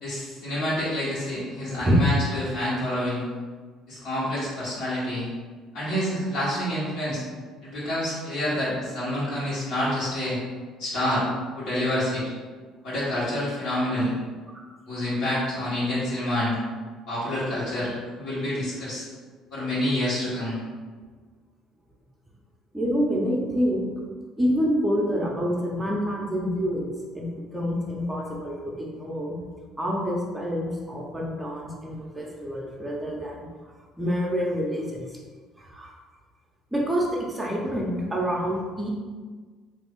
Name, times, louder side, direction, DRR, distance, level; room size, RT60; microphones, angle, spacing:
voice 1, 0.0-3.2 3.9-5.3 5.7-7.2 7.6-10.4 10.8-11.2 11.5-12.2 12.8-14.1 14.9-16.6 17.1-17.9 18.2-19.0 19.5-20.6, left 1 dB, 75° left, -9 dB, 1.2 m, -27 dB
voice 2, 22.7-23.9 24.4-29.3 29.8-33.7 34.0-35.0 35.6-35.9 36.7-38.9, equal, 10° right, -3 dB, 0.6 m, -27 dB
3.0 x 2.5 x 3.6 m, 1.5 s
cardioid pair, 105°, 0 cm